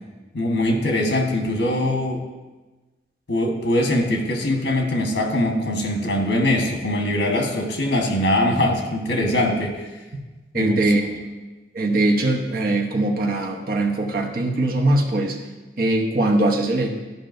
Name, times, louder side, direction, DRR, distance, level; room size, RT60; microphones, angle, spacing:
voice 1, 0.3-2.2 3.3-9.9 10.5-10.8, left 1 dB, 90° left, 2 dB, 1.3 m, -22 dB
voice 2, 10.5-11.0 11.7-15.4 15.8-16.9, right 2 dB, 55° right, 1 dB, 0.8 m, -21 dB
12.0 x 5.4 x 2.6 m, 1.2 s
head